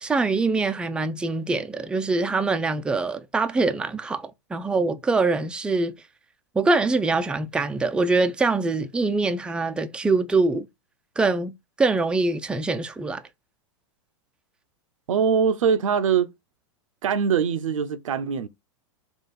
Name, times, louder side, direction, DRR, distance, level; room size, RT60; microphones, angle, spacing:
voice 1, 0.0-5.9 6.5-10.7 11.2-11.5 11.8-13.2, right 3 dB, 5° right, 0.4 m, -24 dB
voice 2, 15.1-16.3 17.0-18.5, right 7 dB, 80° right, 0.5 m, -22 dB
3.8 x 2.4 x 4.0 m
hypercardioid pair, 110°, 17 cm